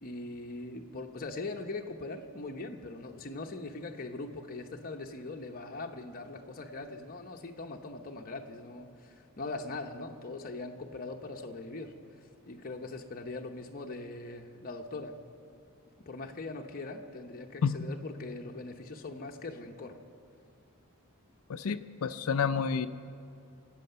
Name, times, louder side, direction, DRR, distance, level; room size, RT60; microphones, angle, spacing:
voice 1, 0.0-11.9 12.5-15.1 16.1-20.0, left 2 dB, 40° left, 2 dB, 0.9 m, -41 dB
voice 2, 21.5-22.9, left 6 dB, 85° left, 10 dB, 0.5 m, -29 dB
25.0 x 8.5 x 6.7 m, 2.4 s
head